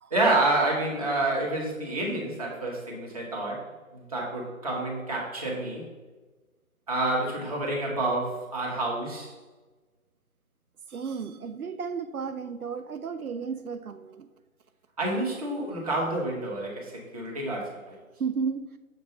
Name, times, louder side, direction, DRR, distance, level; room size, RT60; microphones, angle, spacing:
voice 1, 0.1-5.9 6.9-9.3 15.0-18.0, right 2 dB, 25° right, -3 dB, 1.1 m, -28 dB
voice 2, 10.9-14.3 18.2-18.8, right 6 dB, 90° right, 10 dB, 0.6 m, -33 dB
6.7 x 2.6 x 5.3 m, 1.2 s
figure-of-eight pair, 150°, 42 cm